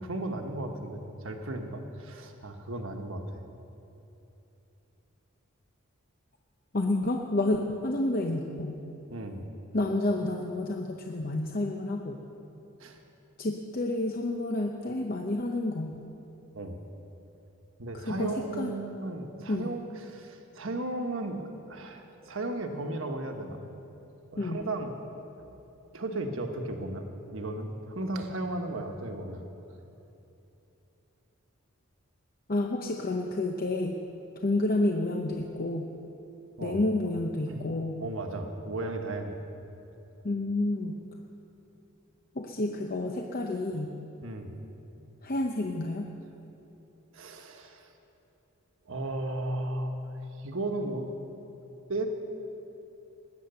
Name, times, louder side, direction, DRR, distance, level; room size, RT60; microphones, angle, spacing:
voice 1, 0.0-3.4 9.1-9.4 12.8-13.0 16.5-16.8 17.8-23.6 24.3-24.9 25.4-25.5 25.9-27.1 27.3-29.4 36.6-36.8 37.5-37.6 38.0-39.4 44.2-44.5 47.1-47.9 48.9-50.0 50.4-51.1 51.9-52.1, right 2 dB, 70° right, 4 dB, 1.3 m, -35 dB
voice 2, 6.7-8.8 9.7-12.2 13.4-15.9 17.9-18.7 19.5-19.7 24.4-24.6 32.5-34.0 34.4-35.9 36.6-38.0 40.2-40.9 42.3-43.9 45.2-46.1, left 2 dB, 40° left, 2 dB, 0.7 m, -29 dB
19.5 x 9.6 x 6.8 m, 3.0 s
head